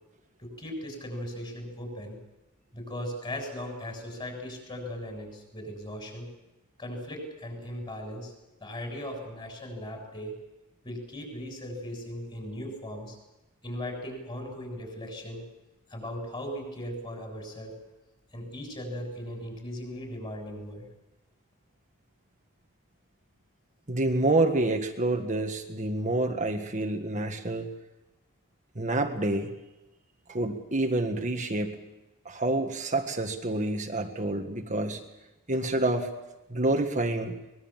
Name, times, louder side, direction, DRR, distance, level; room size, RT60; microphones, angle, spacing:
voice 1, 0.4-2.2 2.7-6.3 6.8-8.3 8.6-10.3 10.8-13.2 13.6-15.4 15.9-17.8 18.3-20.9, equal, 25° left, 3 dB, 7.0 m, -38 dB
voice 2, 23.9-27.7 28.8-29.5 30.3-31.9 32.3-35.1 35.5-36.1 36.5-37.4, right 2 dB, 35° right, 4 dB, 1.7 m, -28 dB
24.0 x 21.0 x 7.5 m, 1.0 s
head